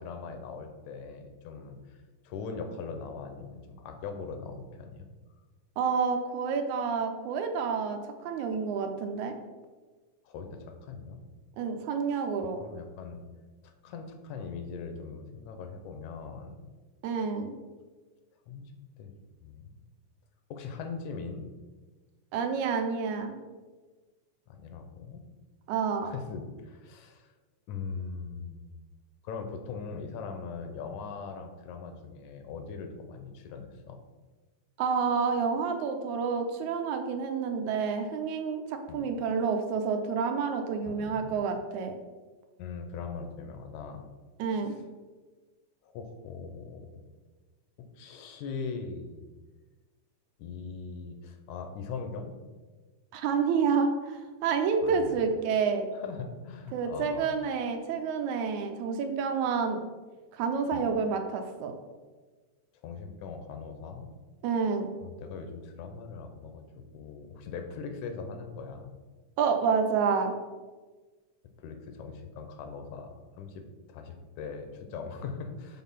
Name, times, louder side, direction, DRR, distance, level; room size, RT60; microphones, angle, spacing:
voice 1, 0.0-1.8 2.2-5.1 10.3-11.2 12.1-12.3 12.6-13.2 13.8-16.6 18.5-18.7 19.0-19.1 19.4-19.8 20.5-21.5 24.5-25.2 26.0-27.3 27.7-28.6 29.2-34.0 38.9-39.1 40.9-41.3 42.6-44.0 44.6-44.8 45.8-47.0 48.0-49.2 50.4-52.5 54.8-55.2 55.9-57.3 60.7-60.8 62.8-64.1 65.0-68.9 71.6-75.8, left 5 dB, 85° left, 6 dB, 2.2 m, -40 dB
voice 2, 5.8-9.3 11.6-12.6 17.0-17.5 22.3-23.3 25.7-26.1 34.8-41.9 44.4-44.7 53.1-55.9 56.7-59.8 60.3-61.8 64.4-64.9 69.4-70.3, right 5 dB, 80° right, 5 dB, 2.1 m, -29 dB
6.4 x 3.8 x 5.6 m, 1.3 s
omnidirectional pair, 3.3 m